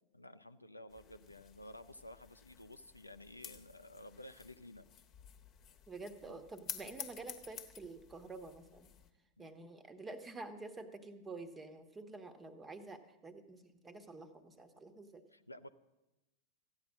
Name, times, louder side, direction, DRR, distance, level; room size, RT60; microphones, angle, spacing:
voice 1, 0.1-4.9 6.2-6.4 9.4-9.5 15.3-15.7, left 1 dB, 85° left, 11 dB, 0.5 m, -53 dB
sound 1, 0.9-9.1, left 8 dB, 30° left, 1.2 m, -52 dB
voice 2, 5.9-8.9 9.4-15.2, right 3 dB, 15° right, 9 dB, 1.2 m, -49 dB
14.5 x 9.6 x 7.3 m, 1.0 s
figure-of-eight pair, 90°, 0 cm